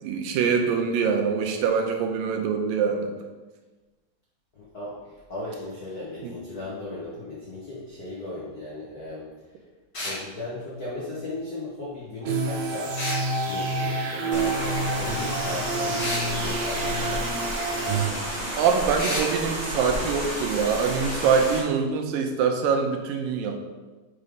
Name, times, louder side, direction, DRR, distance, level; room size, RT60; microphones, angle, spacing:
voice 1, 0.0-3.1 6.2-6.3 18.6-23.6, right 6 dB, 90° right, 4 dB, 2.5 m, -24 dB
voice 2, 4.5-9.3 10.0-13.2 13.5-17.5, left 2 dB, 75° left, -7 dB, 0.8 m, -37 dB
sound 1, 9.9-10.2 13.0-13.2 16.0-16.3 19.0-19.3, left 1 dB, 40° left, 0.9 m, -30 dB
sound 2, 12.2-18.1, right 3 dB, 70° right, 1.9 m, -28 dB
sound 3, 14.3-21.6, equal, 20° right, 1.2 m, -31 dB
5.5 x 5.1 x 5.1 m, 1.3 s
omnidirectional pair, 3.9 m